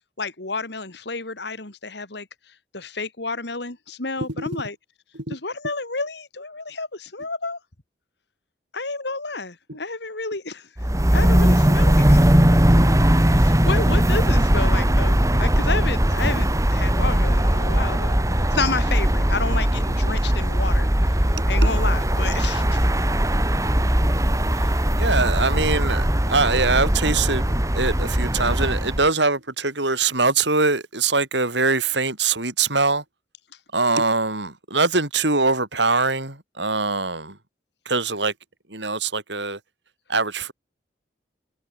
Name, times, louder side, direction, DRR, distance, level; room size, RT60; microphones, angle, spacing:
voice 1, 0.2-2.3 2.7-4.8 5.3-7.6 8.7-10.7 11.1-12.2 13.3-18.2 18.5-21.2 21.5-22.9 24.5-24.7, left 3 dB, 65° left, 2.4 m, -30 dB
sound 1, 10.8-29.1, equal, 15° right, 1.9 m, -19 dB
voice 2, 25.0-33.0 33.7-37.4 37.8-38.3 38.7-39.6 40.1-40.5, right 3 dB, 70° right, 6.4 m, -23 dB
head